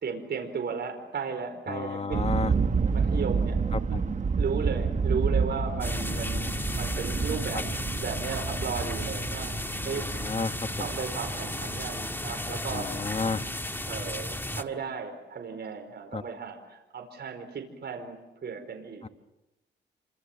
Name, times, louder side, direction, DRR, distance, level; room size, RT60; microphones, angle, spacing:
voice 1, 0.0-2.3 2.9-4.0 4.4-9.6 9.8-10.0 10.8-12.9 13.9-19.0, right 5 dB, 60° right, 4 dB, 4.9 m, -35 dB
voice 2, 1.7-2.5 3.7-4.0 7.5-7.6 9.9-10.5 12.7-13.4 16.1-16.2 19.0-19.1, left 4 dB, 30° left, 9 dB, 1.5 m, -31 dB
sound 1, 2.1-13.7, right 5 dB, 40° right, 1.4 m, -30 dB
sound 2, 5.8-14.6, left 1 dB, 10° left, 1.7 m, -34 dB
29.0 x 26.0 x 7.5 m, 1.0 s
cardioid pair, 75°, 19 cm